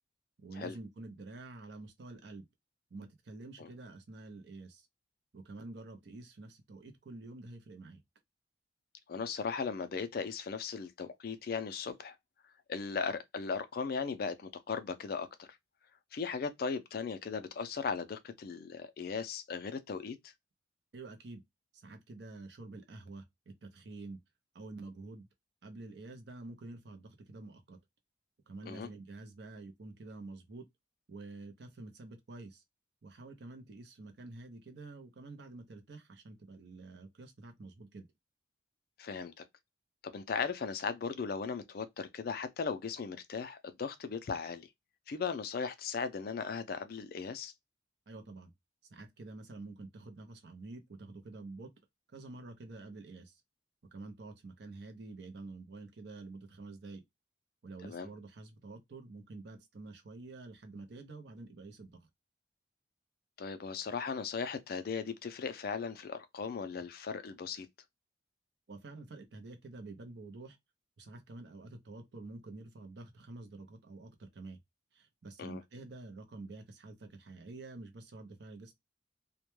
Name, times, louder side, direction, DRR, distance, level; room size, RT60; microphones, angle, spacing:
voice 1, 0.4-2.5 2.9-4.9 5.3-8.0 20.9-21.4 21.7-23.3 23.6-24.2 24.5-25.3 25.6-27.8 28.5-30.7 31.1-32.6 33.0-38.1 48.1-48.5 48.9-51.7 52.1-53.4 53.9-57.0 57.6-62.1 68.7-70.6 71.0-74.6 74.9-78.8, right 2 dB, 55° right, 0.5 m, -48 dB
voice 2, 9.1-12.2 12.7-15.5 16.1-20.3 28.7-28.9 39.0-39.4 40.0-44.7 45.1-47.5 57.8-58.1 63.4-67.7 75.4-75.6, left 5 dB, 50° left, 0.3 m, -37 dB
2.1 x 2.1 x 3.0 m
head